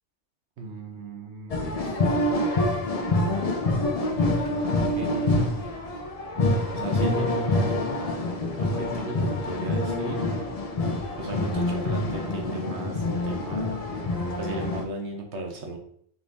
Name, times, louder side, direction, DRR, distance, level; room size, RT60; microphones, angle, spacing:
voice 1, 0.6-2.0 4.1-4.6 4.9-5.4 6.7-7.9 8.6-10.2 11.2-13.9 14.4-15.8, right 2 dB, 85° right, 2 dB, 1.1 m, -36 dB
sound 1, 1.5-14.8, left 2 dB, 45° left, 0.5 m, -26 dB
4.9 x 3.5 x 2.6 m, 0.63 s
omnidirectional pair, 1.1 m